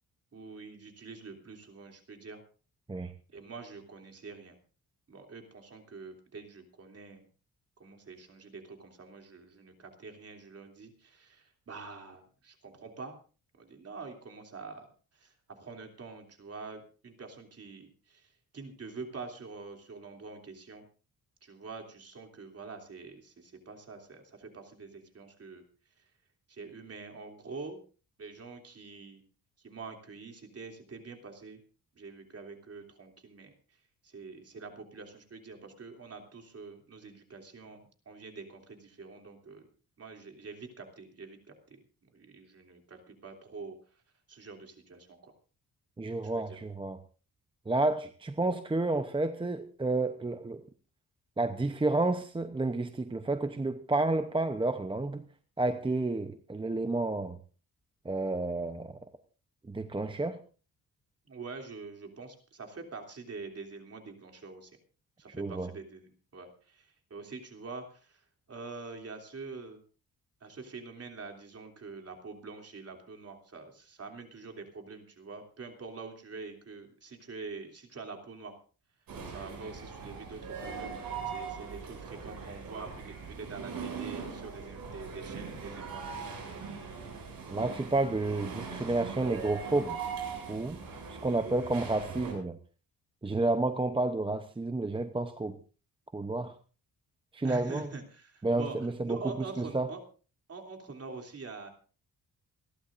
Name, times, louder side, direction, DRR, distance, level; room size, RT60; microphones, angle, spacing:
voice 1, 0.3-2.4 3.3-4.6 5.1-7.2 7.8-13.2 13.6-14.9 15.1-20.8 21.4-25.6 26.5-27.8 28.2-29.2 29.6-31.6 32.0-33.5 34.0-39.7 40.0-43.8 44.3-45.3 46.2-46.6 61.3-64.7 65.2-69.8 70.4-78.6 79.2-80.9 81.2-86.4 97.4-100.0 100.5-101.7, right 4 dB, 40° right, 4 dB, 3.1 m, -45 dB
voice 2, 46.0-47.0 47.7-50.6 51.4-55.2 55.6-57.4 58.0-59.0 59.7-60.4 65.3-65.7 87.5-90.0 90.5-90.8 91.1-92.6 93.2-95.6 96.1-96.5 97.3-97.9 98.4-99.2 99.6-99.9, right 2 dB, 15° right, 8 dB, 0.8 m, -30 dB
sound 1, 79.1-92.3, right 5 dB, 70° right, 7.4 m, -40 dB
28.0 x 11.5 x 2.6 m, 0.36 s
cardioid pair, 120°, 36 cm